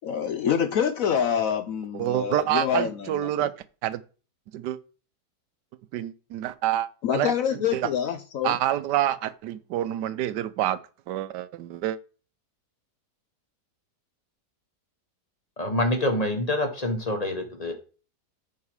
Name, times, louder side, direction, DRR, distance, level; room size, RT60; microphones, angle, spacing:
voice 1, 0.0-3.3 7.0-8.6, left 8 dB, 65° left, 0.9 m, -26 dB
voice 2, 1.9-3.5 3.8-4.0 4.5-4.8 5.9-7.9 8.4-10.8 11.1-12.0, right 12 dB, 85° right, 1.2 m, -27 dB
voice 3, 15.6-17.7, left 1 dB, 25° left, 1.5 m, -26 dB
8.3 x 5.7 x 4.8 m
omnidirectional pair, 1.8 m